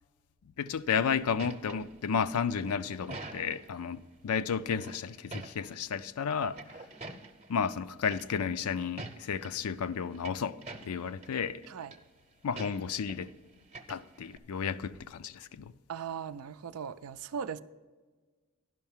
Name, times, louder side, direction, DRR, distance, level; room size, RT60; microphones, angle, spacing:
voice 1, 0.6-6.6 7.5-10.6 10.8-11.6 12.4-13.3 13.9-15.7, left 6 dB, 85° left, 0.4 m, -32 dB
sound 1, 0.9-3.8 4.7-6.0 6.3-7.5 8.1-8.5 8.8-9.5 9.9-11.4 11.6-12.0 12.6-13.3 13.6-14.4, right 2 dB, 30° right, 0.8 m, -46 dB
voice 2, 15.9-17.6, right 7 dB, 85° right, 0.4 m, -38 dB
11.0 x 5.7 x 7.2 m
head